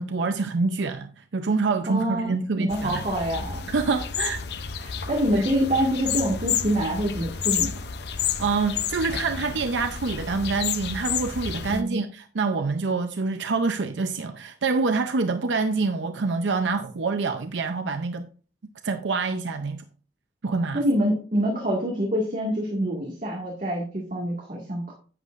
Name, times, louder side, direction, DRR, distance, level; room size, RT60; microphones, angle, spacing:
voice 1, 0.0-3.0 3.7-4.4 5.3-5.5 8.4-18.3 18.8-19.8 20.4-20.8, right 4 dB, 90° right, 0.6 m, -26 dB
voice 2, 1.9-3.6 4.8-7.7 11.7-12.0 20.7-24.9, equal, 45° right, 2.0 m, -26 dB
sound 1, 2.7-11.8, left 8 dB, 65° left, 0.6 m, -31 dB
10.5 x 8.1 x 2.5 m
head